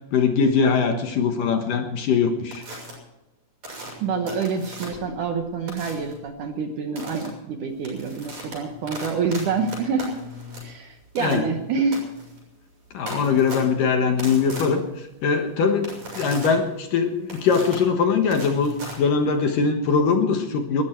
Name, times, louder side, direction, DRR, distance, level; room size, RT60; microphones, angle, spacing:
voice 1, 0.1-2.6 11.2-11.4 12.9-14.8 15.2-20.8, left 5 dB, 65° left, 5 dB, 2.5 m, -21 dB
sound 1, 2.5-2.9 3.6-5.1 5.7-6.1 7.0-7.3 7.7-19.6, right 1 dB, 40° right, 8.0 m, -38 dB
voice 2, 4.0-10.2 10.6-12.0, right 5 dB, 65° right, 5 dB, 2.2 m, -27 dB
20.0 x 14.0 x 4.5 m, 0.94 s
omnidirectional pair, 4.8 m